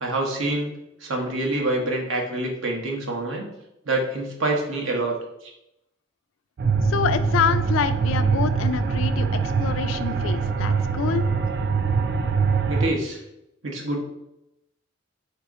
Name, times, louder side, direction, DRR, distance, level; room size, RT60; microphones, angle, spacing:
voice 1, 0.0-3.5 3.9-5.1 12.7-13.2 13.6-14.0, right 2 dB, 75° right, 0 dB, 1.0 m, -26 dB
sound 1, 6.6-12.9, right 5 dB, 55° right, 0.3 m, -23 dB
voice 2, 6.8-11.3, left 7 dB, 80° left, 11 dB, 0.3 m, -26 dB
4.0 x 2.9 x 3.6 m, 0.85 s
head